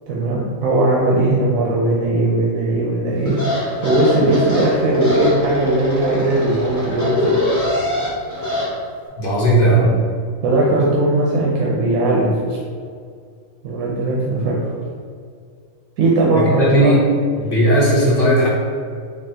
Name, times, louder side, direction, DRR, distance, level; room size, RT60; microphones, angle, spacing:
voice 1, 0.1-7.3 9.6-9.9 10.4-12.3 13.6-14.5 16.0-16.9, right 2 dB, 85° right, -4 dB, 1.1 m, -18 dB
sound 1, 3.2-8.7, left 1 dB, 15° left, 1.1 m, -23 dB
voice 2, 9.2-9.9 16.3-17.0 17.4-18.5, right 1 dB, 45° left, -6 dB, 1.1 m, -16 dB
4.1 x 2.9 x 2.7 m, 2.1 s
omnidirectional pair, 1.4 m